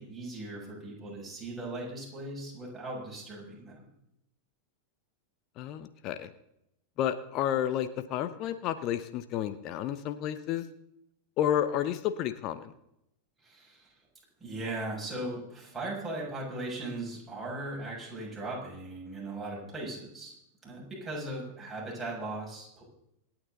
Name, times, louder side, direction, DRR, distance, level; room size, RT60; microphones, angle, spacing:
voice 1, 0.0-3.8 13.4-13.9 14.4-20.3 20.6-22.8, right 2 dB, 10° right, -5 dB, 6.7 m, -38 dB
voice 2, 5.6-6.3 7.0-10.6 11.4-12.7, left 10 dB, 40° left, 11 dB, 0.9 m, -31 dB
26.0 x 9.1 x 4.0 m, 0.80 s
figure-of-eight pair, 90°, 0 cm